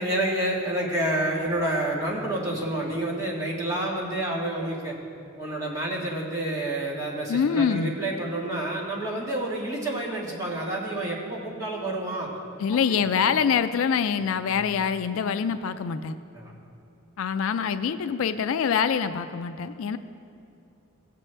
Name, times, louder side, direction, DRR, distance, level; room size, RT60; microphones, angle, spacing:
voice 1, 0.0-5.0 5.4-12.3 12.9-13.0 14.5-14.6 16.3-16.5, right 1 dB, 15° right, -5 dB, 1.5 m, -29 dB
voice 2, 7.3-7.9 12.6-16.2 17.2-20.0, left 7 dB, 70° left, 11 dB, 0.3 m, -25 dB
16.0 x 7.6 x 3.3 m, 2.6 s
head